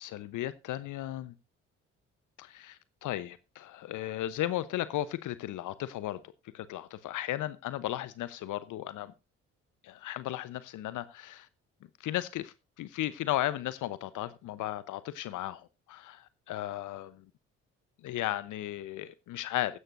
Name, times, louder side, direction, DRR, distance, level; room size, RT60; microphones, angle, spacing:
voice 1, 0.0-1.3 2.4-6.2 6.5-9.1 9.8-11.5 12.0-17.3 18.0-19.8, left 14 dB, 60° left, 0.9 m, -35 dB
15.5 x 11.0 x 2.6 m
hypercardioid pair, 45°, 34 cm